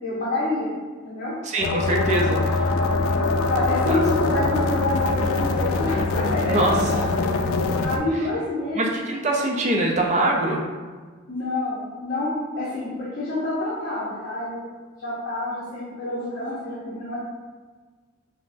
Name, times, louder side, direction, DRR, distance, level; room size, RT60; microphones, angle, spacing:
voice 1, 0.0-0.7 1.0-1.4 3.5-7.0 7.8-8.9 9.3-9.4 11.3-14.6 15.0-17.3, left 2 dB, 50° left, -8 dB, 0.7 m, -27 dB
voice 2, 1.4-2.6 3.9-4.0 6.5-6.7 7.1-7.2 8.7-10.6, right 1 dB, 35° right, 0 dB, 0.5 m, -23 dB
sound 1, 1.6-8.0, left 3 dB, 80° left, 0.3 m, -23 dB
5.3 x 2.1 x 2.6 m, 1.4 s
head